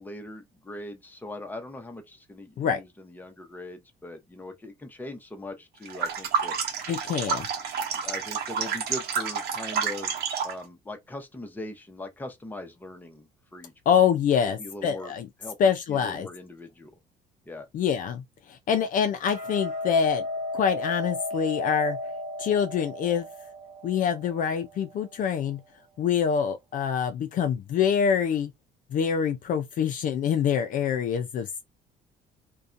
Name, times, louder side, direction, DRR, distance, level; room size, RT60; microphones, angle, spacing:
voice 1, 0.0-6.6 7.9-10.1 10.4-13.7 14.4-15.1 15.4-15.6 15.9-16.9 17.5-17.7, left 1 dB, 10° left, 0.7 m, -40 dB
sound 1, 5.9-10.6, right 6 dB, 70° right, 0.8 m, -29 dB
voice 2, 6.9-7.5 13.9-15.3 15.6-16.3 17.7-18.2 18.5-20.2 20.5-22.0 22.4-23.3 23.8-25.6 26.0-28.5 28.9-31.6, left 7 dB, 55° left, 0.4 m, -25 dB
Hammer, 19.3-25.5, left 1 dB, 40° right, 1.2 m, -35 dB
2.6 x 2.2 x 2.4 m
cardioid pair, 110°, 17 cm